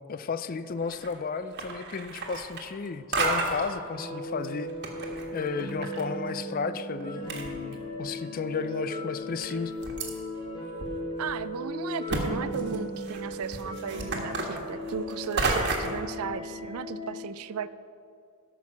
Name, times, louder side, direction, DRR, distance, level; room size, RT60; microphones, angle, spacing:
voice 1, 0.1-4.7 5.3-9.7, left 5 dB, 40° left, 13 dB, 0.4 m, -33 dB
sound 1, 0.8-1.2 1.5-2.9 3.1-3.7 4.4-6.0 6.3-6.4 7.0-7.1 7.3-8.1 8.6-8.7 9.4-10.1 10.8-10.9 11.3-11.4 12.1-12.2 12.5-16.0, right 3 dB, 50° right, 1.4 m, -31 dB
sound 2, 3.9-17.2, left 1 dB, 20° left, 2.5 m, -37 dB
voice 2, 11.2-17.7, right 6 dB, 75° right, 15 dB, 0.4 m, -35 dB
13.0 x 6.2 x 5.9 m, 2.4 s
head